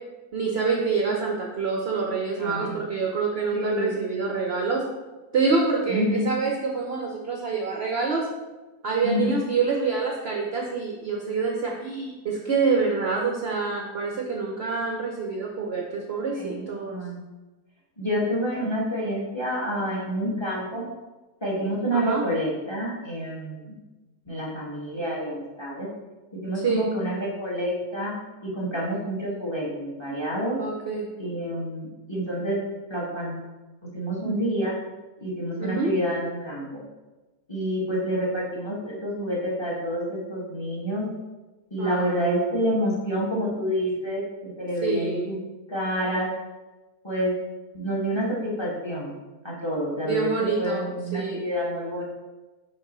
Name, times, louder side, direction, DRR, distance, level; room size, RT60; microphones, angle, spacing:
voice 1, 0.3-4.8 5.3-8.3 8.8-17.0 21.9-22.2 26.6-26.9 30.6-31.1 35.6-35.9 41.8-42.6 44.8-45.3 50.0-50.8 51.1-51.4, right 4 dB, 55° right, 0 dB, 0.8 m, -26 dB
voice 2, 2.4-2.8 3.5-4.0 5.9-6.3 9.0-9.4 16.3-17.2 18.0-20.9 21.4-23.8 24.3-25.9 26.4-28.1 28.4-30.6 31.2-32.6 32.9-33.3 33.9-34.7 35.2-36.8 37.5-41.1 41.7-45.4 45.7-46.3 47.0-47.3 47.7-49.1 49.4-52.0, equal, 20° left, -4 dB, 1.4 m, -28 dB
6.2 x 3.0 x 5.4 m, 1.1 s
omnidirectional pair, 1.7 m